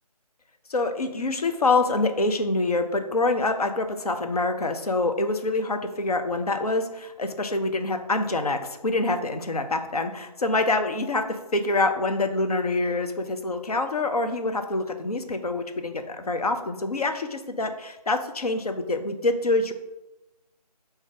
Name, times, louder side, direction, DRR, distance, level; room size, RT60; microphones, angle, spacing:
voice 1, 0.7-11.2 11.5-19.7, left 2 dB, 65° left, 6 dB, 0.6 m, -26 dB
4.5 x 2.7 x 3.9 m, 0.97 s
figure-of-eight pair, 155°, 21 cm